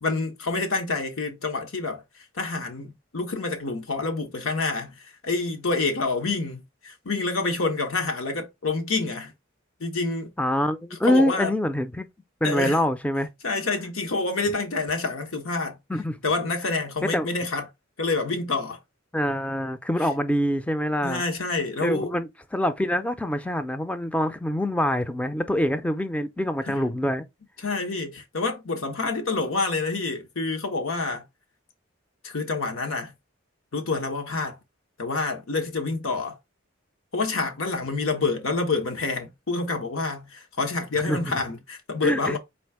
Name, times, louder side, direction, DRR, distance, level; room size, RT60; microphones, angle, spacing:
voice 1, 0.0-9.3 9.8-10.3 11.1-11.5 12.4-12.8 13.4-15.8 16.2-17.7 18.0-18.8 21.0-22.1 26.6-26.8 27.6-31.3 32.2-33.1 33.7-34.6 35.0-36.4 37.1-42.4, left 3 dB, 85° left, 1.2 m, -27 dB
voice 2, 10.4-12.1 12.4-13.3 15.9-16.2 17.1-17.3 19.1-21.2 21.8-27.2 41.1-41.4 42.0-42.4, left 1 dB, 5° left, 0.3 m, -25 dB
4.3 x 2.4 x 4.6 m
head